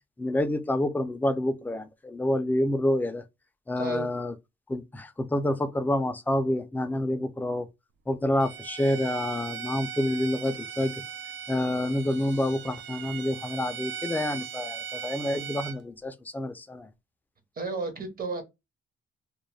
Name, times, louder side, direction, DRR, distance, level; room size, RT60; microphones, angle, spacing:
voice 1, 0.2-3.2 3.7-4.3 4.7-7.7 8.1-10.9 11.5-16.9, left 1 dB, 10° left, 0.4 m, -28 dB
voice 2, 3.8-4.1 17.6-18.4, right 3 dB, 45° right, 0.9 m, -32 dB
Bowed string instrument, 8.4-15.8, right 8 dB, 70° right, 0.4 m, -39 dB
2.3 x 2.1 x 3.1 m
cardioid pair, 90°, 20 cm